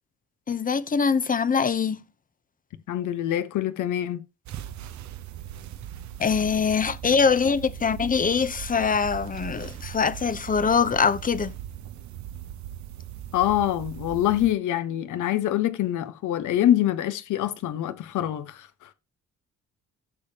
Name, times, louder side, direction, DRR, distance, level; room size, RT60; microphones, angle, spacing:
voice 1, 0.5-2.0 6.2-11.5, left 6 dB, 30° left, 0.7 m, -23 dB
voice 2, 2.9-4.2 13.3-18.9, left 12 dB, 80° left, 1.2 m, -25 dB
sound 1, 4.5-14.5, right 11 dB, 70° right, 0.8 m, -39 dB
14.5 x 6.8 x 2.9 m
cardioid pair, 90°, 30 cm